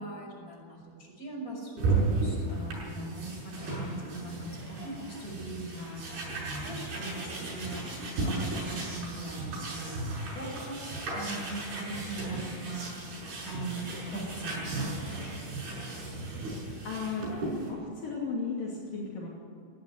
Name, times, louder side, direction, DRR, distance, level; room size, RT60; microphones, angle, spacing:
voice 1, 0.0-15.6, right 2 dB, 20° left, -2 dB, 6.4 m, -41 dB
sound 1, 1.8-17.7, right 3 dB, 75° right, 8.1 m, -35 dB
voice 2, 16.8-19.3, left 4 dB, 60° left, -4 dB, 4.3 m, -35 dB
20.0 x 14.0 x 9.6 m, 2.3 s
omnidirectional pair, 4.6 m